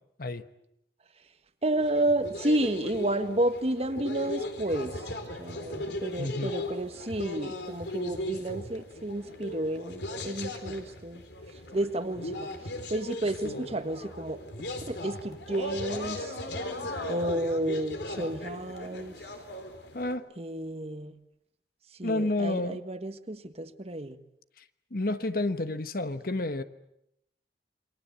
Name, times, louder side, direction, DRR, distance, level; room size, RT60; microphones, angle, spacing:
voice 1, 1.6-5.0 5.4-11.2 11.7-12.5 12.9-16.4 17.1-19.1 20.4-21.2 22.0-24.2, right 1 dB, 35° right, 1.5 m, -31 dB
sound 1, 1.7-20.2, left 1 dB, 75° left, 4.1 m, -37 dB
voice 2, 6.2-6.5 19.9-20.3 22.0-22.8 24.6-24.7 24.9-26.6, left 2 dB, 55° left, 1.3 m, -30 dB
28.5 x 23.5 x 8.2 m
head